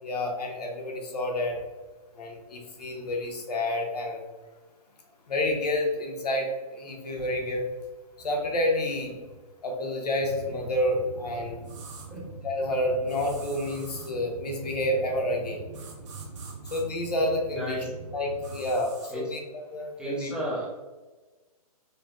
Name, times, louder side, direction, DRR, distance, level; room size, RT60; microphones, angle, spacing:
voice 1, 0.0-1.6 2.1-4.2 5.3-7.6 8.2-9.2 9.6-11.6 12.4-15.6 16.7-17.8 18.1-19.4 19.7-20.3, left 1 dB, 85° left, 1 dB, 1.1 m, -29 dB
sound 1, 10.2-18.7, right 3 dB, 80° right, 0.6 m, -43 dB
sound 2, 11.6-12.1 13.1-14.1 15.7-16.8 18.4-19.1, right 5 dB, 50° right, 1.1 m, -47 dB
voice 2, 17.5-17.9 19.1-19.3 20.0-20.8, right 1 dB, 5° right, -6 dB, 0.6 m, -33 dB
4.9 x 2.2 x 3.0 m, 1.2 s
hypercardioid pair, 150°, 20 cm